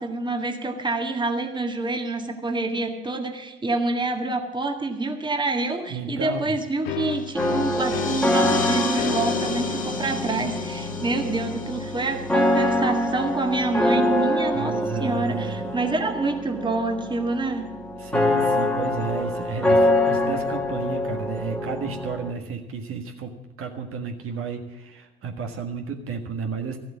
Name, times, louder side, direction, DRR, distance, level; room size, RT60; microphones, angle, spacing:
voice 1, 0.0-17.7, right 3 dB, 15° right, 4 dB, 1.8 m, -27 dB
voice 2, 5.9-6.5 14.5-15.7 18.0-26.8, right 5 dB, 45° right, 4 dB, 1.6 m, -32 dB
sound 1, 6.8-14.3, left 12 dB, 80° left, 0.7 m, -34 dB
sound 2, 7.1-13.3, left 4 dB, 30° left, 2.0 m, -36 dB
sound 3, 7.4-22.3, left 1 dB, 5° left, 1.8 m, -25 dB
14.0 x 7.8 x 8.4 m, 1.1 s
hypercardioid pair, 65°, 30 cm